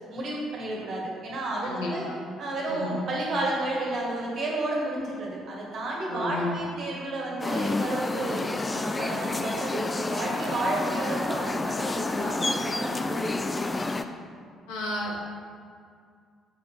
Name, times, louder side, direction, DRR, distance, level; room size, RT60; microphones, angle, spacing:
voice 1, 0.1-2.1 2.4-8.4 8.7-14.0, right 2 dB, 50° right, -3 dB, 1.9 m, -31 dB
voice 2, 1.6-2.2 2.7-3.0 6.1-6.5 14.7-15.2, left 2 dB, 70° left, -3 dB, 1.4 m, -32 dB
sound 1, 7.4-14.0, left 3 dB, 25° left, 0.4 m, -29 dB
6.5 x 5.0 x 5.1 m, 2.2 s
figure-of-eight pair, 45°, 0 cm